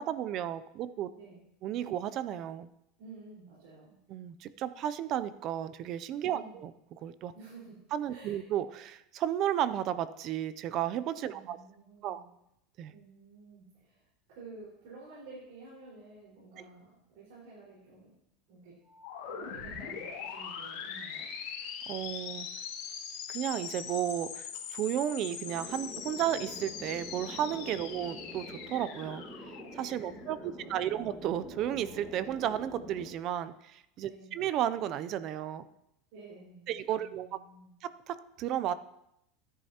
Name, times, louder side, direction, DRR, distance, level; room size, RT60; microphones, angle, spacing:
voice 1, 0.0-1.1 1.6-2.7 4.1-6.7 7.0-7.3 7.9-11.6 12.0-12.2 12.8-12.9 21.9-22.5 23.3-29.2 29.7-35.7 36.7-37.3 37.8-38.7, right 11 dB, 35° right, 15 dB, 0.4 m, -33 dB
voice 2, 1.1-1.4 3.0-4.0 6.2-6.6 7.3-7.8 8.1-8.4 11.2-12.3 12.9-18.1 18.5-18.8 19.2-21.3 27.8-28.0 30.0-31.1 34.0-34.4 36.1-37.8, right 3 dB, 75° right, -8 dB, 4.5 m, -51 dB
sound 1, 18.8-30.5, left 7 dB, 70° left, 2.3 m, -42 dB
sound 2, 25.4-33.1, equal, ahead, 1.5 m, -46 dB
13.5 x 9.8 x 2.9 m, 0.79 s
supercardioid pair, 165°, 0 cm